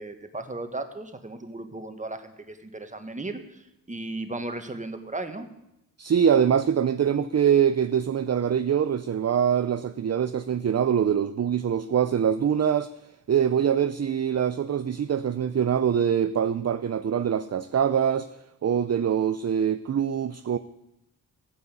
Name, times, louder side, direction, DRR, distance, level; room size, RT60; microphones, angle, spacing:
voice 1, 0.0-5.5, right 2 dB, 20° right, 1.6 m, -36 dB
voice 2, 6.0-12.9 13.3-18.3 18.6-20.6, right 8 dB, 45° right, 0.6 m, -24 dB
16.0 x 9.6 x 8.4 m
wide cardioid pair, 135°, 37 cm